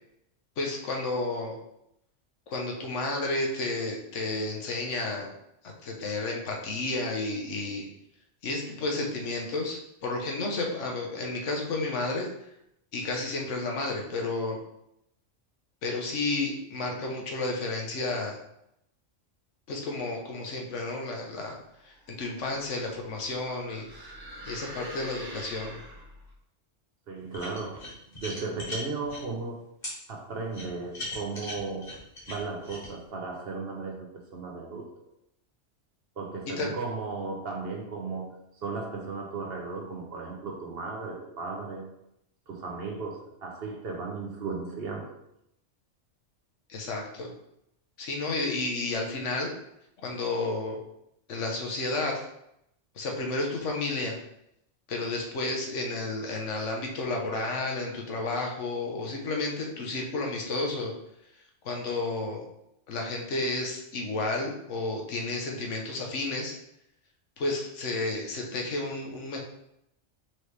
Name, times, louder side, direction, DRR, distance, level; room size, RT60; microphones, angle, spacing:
voice 1, 0.6-1.6 2.5-5.3 5.6-7.9 8.4-12.3 12.9-14.6 15.8-18.4 19.7-21.6 21.8-23.9 24.4-25.8 36.6-36.7 46.7-47.3 48.0-49.5 50.0-50.8 51.3-52.2 53.0-54.2 54.9-60.9 61.6-62.5 62.9-66.6 67.4-69.4, left 2 dB, 80° left, 1 dB, 1.2 m, -31 dB
sound 1, 21.9-26.3, right 1 dB, 30° right, 0.4 m, -45 dB
voice 2, 27.1-27.9 28.2-29.6 30.1-31.9 32.3-35.1 36.2-41.9 42.5-45.2 58.4-58.5, right 4 dB, 60° right, 1 dB, 0.9 m, -36 dB
sound 2, 27.3-29.2 29.8-30.0 30.5-32.9, left 1 dB, 40° left, 1.5 m, -38 dB
4.5 x 3.0 x 3.2 m, 0.79 s
omnidirectional pair, 1.2 m